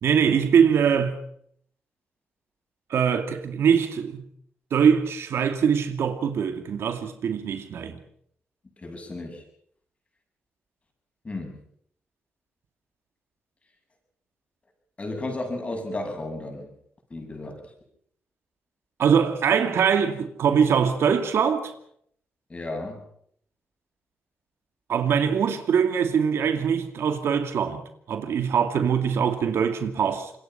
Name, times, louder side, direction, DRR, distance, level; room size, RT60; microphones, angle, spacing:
voice 1, 0.0-1.2 2.9-4.3 4.7-8.0 19.0-21.7 24.9-27.8 28.1-30.3, right 7 dB, 75° right, 2.4 m, -22 dB
voice 2, 8.8-9.4 11.2-11.6 15.0-16.7 17.1-17.6 22.5-23.0, left 2 dB, 30° left, 7.7 m, -33 dB
26.0 x 22.0 x 5.8 m
cardioid pair, 95°, 4 cm